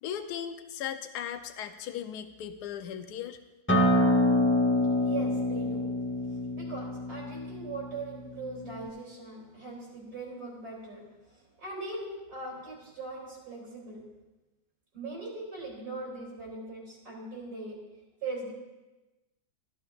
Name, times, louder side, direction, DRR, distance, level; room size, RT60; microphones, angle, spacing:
voice 1, 0.0-3.4, left 9 dB, 75° left, 8 dB, 1.2 m, -37 dB
Acoustic guitar, 3.7-8.9, left 1 dB, 10° left, 0.6 m, -26 dB
voice 2, 5.0-5.9 6.5-14.0 14.9-17.8 18.2-18.5, right 3 dB, 70° right, -5 dB, 3.5 m, -40 dB
14.5 x 11.5 x 2.4 m, 1.1 s
omnidirectional pair, 1.8 m